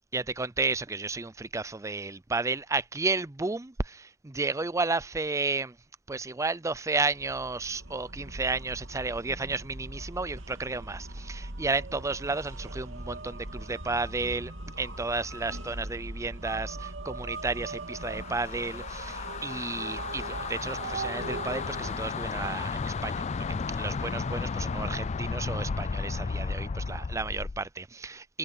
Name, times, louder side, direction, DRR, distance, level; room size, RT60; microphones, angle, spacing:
voice 1, 0.1-5.8 6.1-14.5 14.8-23.2 23.7-28.4, right 3 dB, 15° right, 0.5 m, -32 dB
sound 1, 7.1-22.4, right 2 dB, 80° right, 2.3 m, -40 dB
sound 2, 17.9-27.7, left 4 dB, 35° left, 0.4 m, -34 dB
head